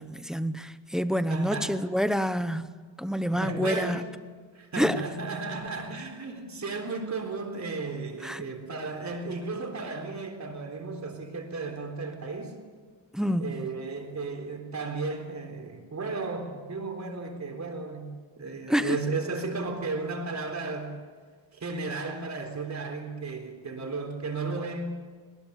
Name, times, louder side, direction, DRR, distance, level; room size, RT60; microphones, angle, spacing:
voice 1, 0.0-2.7 3.0-4.0 4.8-5.0 8.2-8.4 13.1-13.6 18.7-19.0, equal, ahead, 0.8 m, -27 dB
voice 2, 1.3-1.8 3.4-4.1 4.5-12.6 13.4-21.0 21.5-25.0, right 3 dB, 35° right, 3.9 m, -34 dB
22.0 x 20.0 x 8.3 m
cardioid pair, 150°, 47 cm